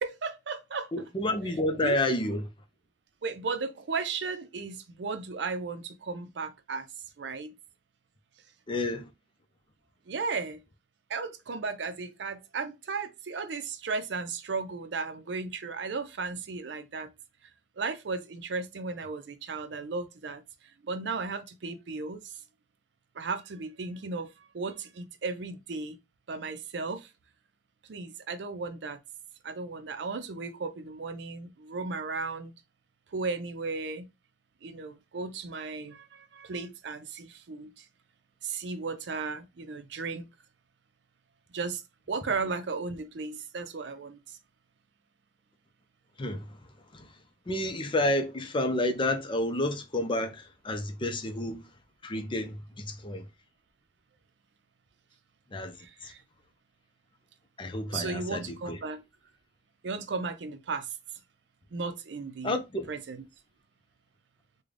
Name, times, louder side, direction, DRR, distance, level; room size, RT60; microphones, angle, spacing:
voice 1, 0.0-0.9 1.8-2.0 3.2-6.9 7.2-7.6 10.1-10.6 11.1-17.1 17.8-20.4 20.9-22.2 23.2-26.0 26.3-27.1 27.9-29.0 29.4-32.5 33.1-34.1 34.6-37.7 38.4-40.3 41.5-41.8 42.1-44.2 55.8-56.2 57.9-59.0 59.8-60.9 61.7-62.6 62.9-63.2, right 4 dB, 90° right, 0.5 m, -35 dB
voice 2, 0.9-2.5 8.7-9.1 46.2-46.5 46.9-47.1 47.5-51.6 52.0-53.2 55.5-55.8 56.0-56.1 57.6-58.8 62.4-62.9, left 1 dB, 30° left, 0.6 m, -30 dB
3.7 x 2.2 x 3.3 m
head